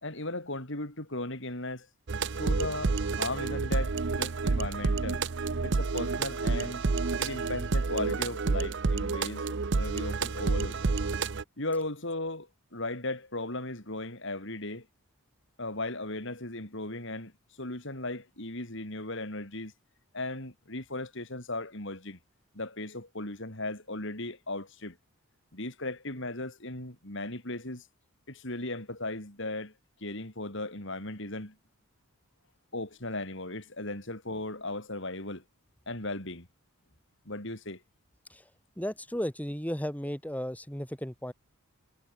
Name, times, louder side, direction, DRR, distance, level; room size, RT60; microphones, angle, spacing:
voice 1, 0.0-1.9 2.4-5.2 5.6-6.8 7.2-10.8 11.6-14.9 15.6-17.3 17.6-19.7 20.1-22.2 22.5-25.0 25.5-27.8 28.3-29.7 30.0-31.6 32.7-35.4 35.9-36.5 37.3-37.8, left 2 dB, 60° left, 5.3 m, -37 dB
sound 1, 2.1-11.4, right 4 dB, 55° right, 0.7 m, -29 dB
voice 2, 38.8-41.3, equal, 5° left, 4.5 m, -34 dB
head